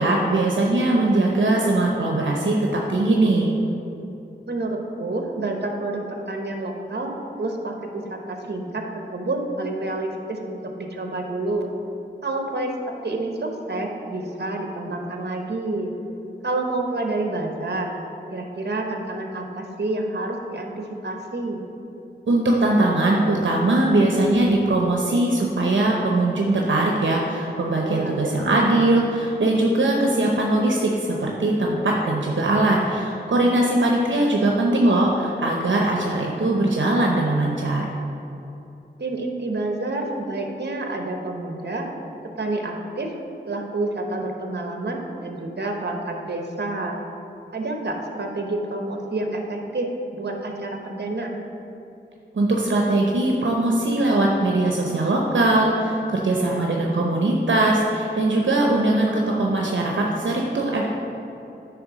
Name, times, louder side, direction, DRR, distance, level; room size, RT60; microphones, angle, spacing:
voice 1, 0.0-3.6 22.3-37.8 52.3-60.9, right 2 dB, 80° right, -1 dB, 0.7 m, -21 dB
voice 2, 4.5-7.1 7.4-8.8 9.1-11.7 12.2-15.9 16.4-17.9 18.3-21.6 27.8-28.3 39.0-41.9 42.4-43.1 43.5-47.0 47.5-51.3 56.3-56.6, right 2 dB, 60° right, 2 dB, 1.0 m, -28 dB
9.4 x 3.4 x 6.2 m, 2.8 s
wide cardioid pair, 55°, 19 cm